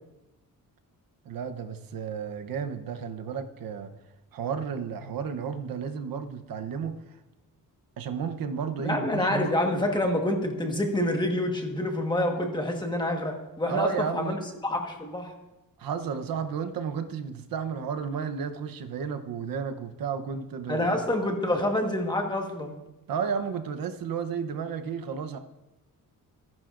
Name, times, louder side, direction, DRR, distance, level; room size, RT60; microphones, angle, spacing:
voice 1, 1.2-3.9 4.3-7.0 8.0-9.5 13.7-14.4 15.8-21.0 23.1-25.4, right 6 dB, 75° right, 7 dB, 0.9 m, -32 dB
voice 2, 8.8-15.3 20.7-22.8, left 1 dB, 15° left, 2 dB, 1.4 m, -27 dB
25.5 x 10.5 x 2.6 m, 1.0 s
wide cardioid pair, 165°, 35 cm